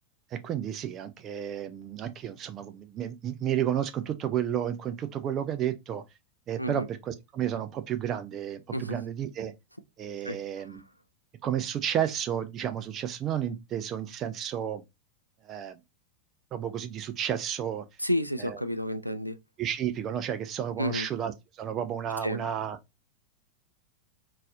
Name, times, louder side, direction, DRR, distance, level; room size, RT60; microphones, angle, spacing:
voice 1, 0.3-6.0 6.5-9.5 10.0-10.8 11.4-14.8 15.4-15.8 16.5-17.9 18.4-18.6 19.6-22.8, right 10 dB, 30° right, 0.5 m, -32 dB
voice 2, 10.2-10.7 18.0-19.4 20.8-21.1 22.2-22.4, equal, 90° left, 0.3 m, -31 dB
4.0 x 2.6 x 2.5 m
figure-of-eight pair, 90°, 0 cm